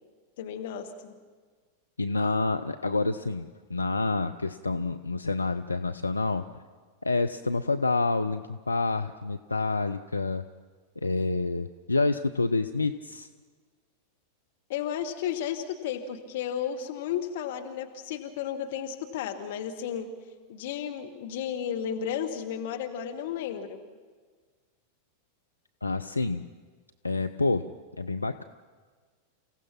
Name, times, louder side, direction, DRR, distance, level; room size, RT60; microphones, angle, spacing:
voice 1, 0.4-1.2 14.7-20.1 20.5-23.8, left 9 dB, 55° left, 5 dB, 1.3 m, -33 dB
voice 2, 2.0-6.4 7.0-10.4 11.0-13.3 25.8-26.4 27.0-27.7 28.0-28.4, left 3 dB, 80° left, 8 dB, 0.5 m, -28 dB
29.5 x 16.0 x 5.9 m, 1.5 s
figure-of-eight pair, 90°, 0 cm